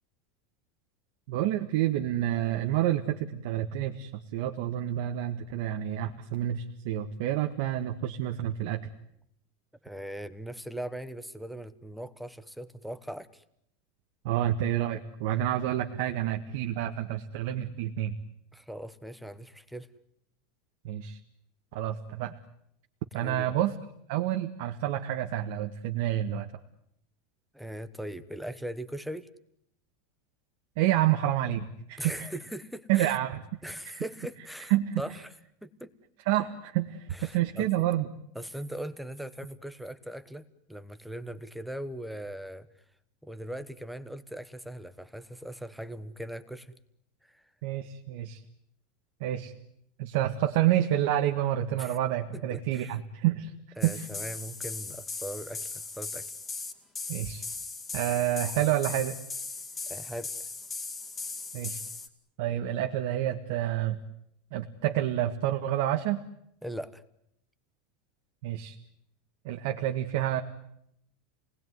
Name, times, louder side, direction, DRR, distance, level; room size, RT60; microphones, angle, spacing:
voice 1, 1.3-8.8 14.2-18.1 20.8-21.2 21.7-22.3 23.1-23.7 24.1-26.5 30.8-32.3 32.9-33.4 33.9-34.0 34.7-35.0 36.3-38.1 47.6-48.4 49.2-49.5 50.0-53.5 53.8-54.1 57.1-57.4 57.9-59.2 61.5-61.8 62.4-64.0 64.5-66.2 68.4-68.7 69.4-70.4, right 12 dB, 60° right, 4 dB, 1.7 m, -28 dB
voice 2, 9.8-13.4 18.5-19.9 23.1-23.5 27.5-29.3 32.0-33.2 33.6-35.3 35.6-35.9 37.1-37.9 38.3-42.7 43.2-46.7 47.2-47.4 51.8-52.0 52.3-53.0 53.8-56.2 59.8-60.3 66.6-67.0, right 1 dB, ahead, 12 dB, 1.1 m, -40 dB
sound 1, 53.8-62.1, left 4 dB, 15° left, 2.4 m, -38 dB
29.0 x 19.5 x 9.5 m, 0.75 s
supercardioid pair, 160°, 0 cm